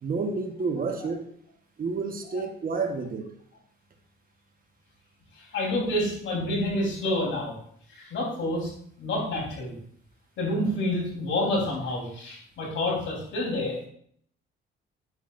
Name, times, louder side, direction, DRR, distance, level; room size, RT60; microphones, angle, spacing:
voice 1, 0.0-1.3 1.8-3.3, right 4 dB, 45° right, 5 dB, 1.2 m, -30 dB
voice 2, 5.5-7.5 7.9-8.7 9.0-9.7 10.4-13.8, left 1 dB, 75° left, -2 dB, 3.7 m, -28 dB
9.6 x 8.0 x 2.6 m, 0.63 s
cardioid pair, 90°, 20 cm